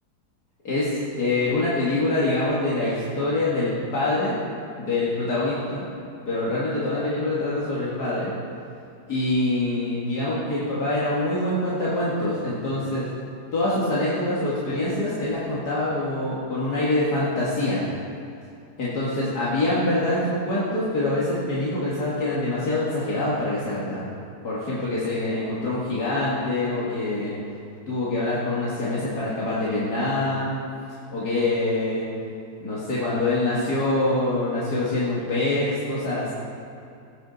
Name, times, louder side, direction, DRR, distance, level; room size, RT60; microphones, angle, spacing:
voice 1, 0.6-4.4 4.8-5.8 6.3-8.3 9.1-13.1 13.5-17.8 18.8-24.0 24.4-27.4 27.9-30.6 31.1-32.0 32.6-36.3, left 2 dB, 70° left, -8 dB, 2.4 m, -25 dB
17.0 x 9.1 x 4.0 m, 2.6 s
omnidirectional pair, 1.7 m